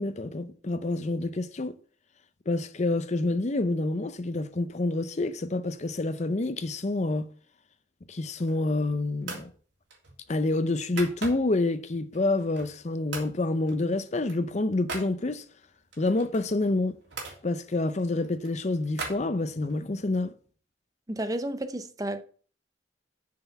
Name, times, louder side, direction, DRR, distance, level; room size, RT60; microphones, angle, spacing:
voice 1, 0.0-1.7 2.5-7.3 8.1-9.5 10.3-15.4 16.0-17.0 17.4-20.3, left 2 dB, 40° left, 0.6 m, -28 dB
sound 1, 8.2-8.8 9.2-9.5 9.9-11.7 12.1-12.8 13.1-13.4 13.7-15.1 15.9-17.4 17.9-19.8, right 3 dB, 85° right, 3.2 m, -40 dB
voice 2, 21.1-22.2, right 1 dB, 20° right, 0.7 m, -32 dB
6.7 x 6.7 x 7.0 m
head